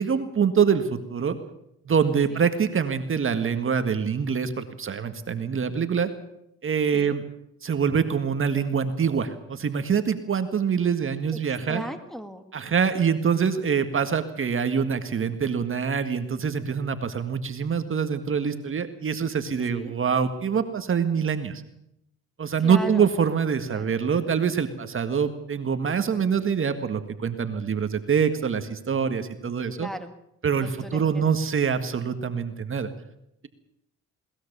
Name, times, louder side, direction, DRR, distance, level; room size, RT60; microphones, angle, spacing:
voice 1, 0.0-1.4 1.8-6.1 6.6-7.2 7.6-11.8 12.5-21.6 22.4-29.9 30.4-32.9, right 6 dB, 45° right, 9 dB, 1.8 m, -25 dB
voice 2, 11.5-12.5 19.8-19.9 22.6-23.1 23.7-23.9 29.8-30.1 30.5-31.3, equal, ahead, 6 dB, 2.1 m, -37 dB
21.5 x 19.0 x 6.9 m, 0.78 s
cardioid pair, 90°, 30 cm